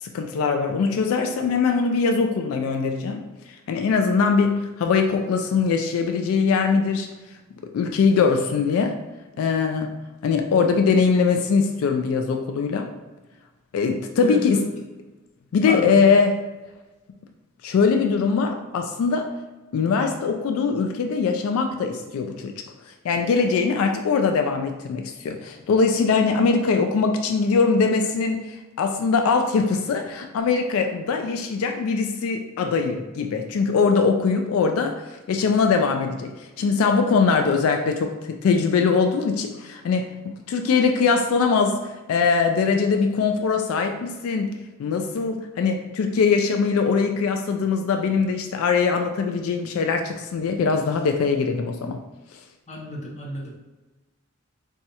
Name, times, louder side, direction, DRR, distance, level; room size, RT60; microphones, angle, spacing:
voice 1, 0.0-3.2 3.7-7.1 7.7-9.0 9.4-9.9 10.2-12.9 13.7-14.6 15.5-16.3 17.6-19.3 19.7-22.5 23.0-52.0, left 5 dB, 85° left, 5 dB, 0.3 m, -22 dB
voice 2, 14.2-14.6 15.6-16.2 52.7-53.5, equal, 35° left, -1 dB, 0.7 m, -32 dB
4.1 x 2.3 x 2.8 m, 1.1 s
head